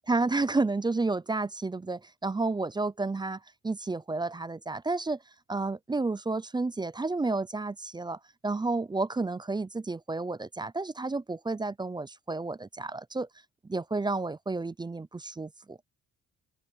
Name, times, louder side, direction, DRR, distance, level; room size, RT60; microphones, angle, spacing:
voice 1, 0.1-5.2 5.5-13.3 13.7-15.8, right 3 dB, 15° right, 0.5 m, -31 dB
open air
cardioid pair, 90°, 30 cm